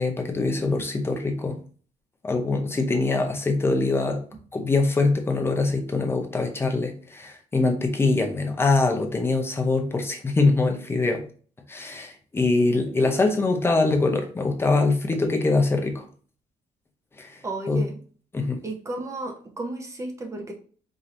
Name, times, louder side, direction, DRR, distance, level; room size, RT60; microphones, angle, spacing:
voice 1, 0.0-1.6 2.2-4.2 4.5-11.2 11.7-16.0 17.2-17.3 17.7-17.8 18.3-18.6, left 3 dB, 15° left, 3 dB, 0.6 m, -23 dB
voice 2, 17.4-18.0 18.6-20.5, right 2 dB, 20° right, 3 dB, 0.8 m, -33 dB
4.9 x 2.8 x 2.5 m, 0.43 s
cardioid pair, 145°, 14 cm